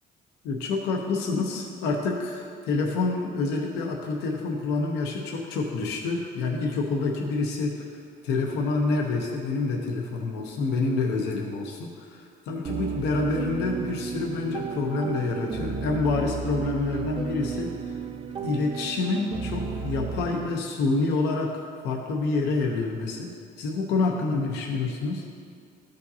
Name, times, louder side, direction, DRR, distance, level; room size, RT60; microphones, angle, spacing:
voice 1, 0.4-7.9 8.2-17.9 18.4-23.3 23.6-25.2, left 3 dB, 85° left, 1 dB, 0.8 m, -27 dB
sound 1, 12.6-20.3, right 6 dB, 30° right, 0.5 m, -33 dB
13.0 x 5.2 x 2.8 m, 2.2 s
cardioid pair, 110°, 17 cm